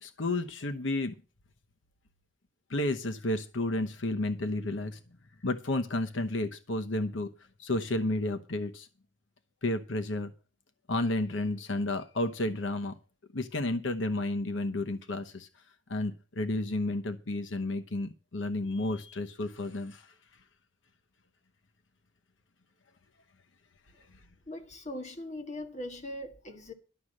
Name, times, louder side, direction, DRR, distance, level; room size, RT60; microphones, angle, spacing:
voice 1, 0.0-1.2 2.7-5.0 5.4-7.3 7.6-8.9 9.6-10.3 10.9-12.9 13.3-15.5 15.9-20.1, left 2 dB, 85° left, 1.0 m, -31 dB
voice 2, 24.5-26.7, left 1 dB, 40° left, 1.7 m, -40 dB
11.5 x 6.5 x 7.4 m
head